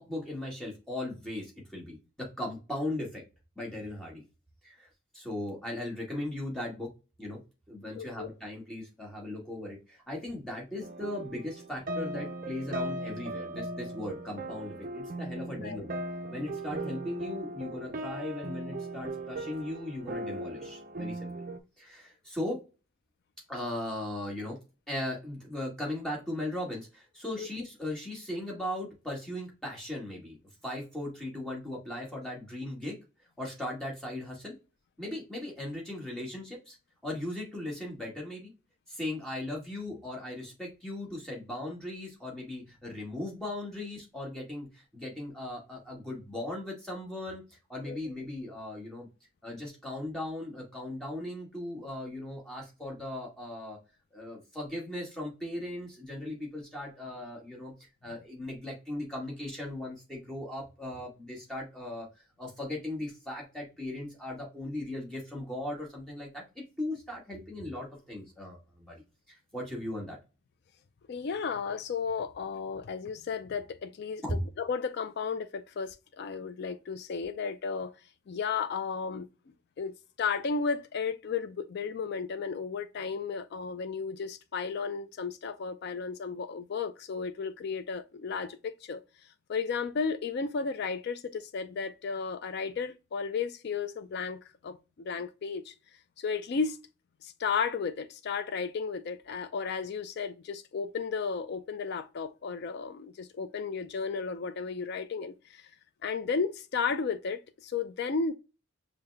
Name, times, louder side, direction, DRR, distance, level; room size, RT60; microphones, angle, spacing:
voice 1, 0.0-3.2 3.5-4.2 4.6-6.9 7.2-7.4 7.7-15.9 16.3-21.3 21.8-22.6 23.5-24.6 24.9-30.4 30.6-33.0 33.4-34.5 35.0-36.8 37.0-38.5 38.9-49.1 49.4-53.8 54.1-62.1 62.4-69.0 69.3-70.2 74.2-74.4, left 1 dB, 5° left, 1.6 m, -38 dB
voice 2, 8.0-8.3 15.6-15.9 27.4-27.5 47.9-48.0 71.1-74.2 74.6-77.9 78.3-79.3 79.8-89.0 89.5-95.7 96.2-96.8 97.2-105.6 106.0-108.3, left 5 dB, 50° left, 0.3 m, -34 dB
sound 1, 10.8-21.6, right 1 dB, 40° right, 0.5 m, -38 dB
5.5 x 2.2 x 3.3 m
head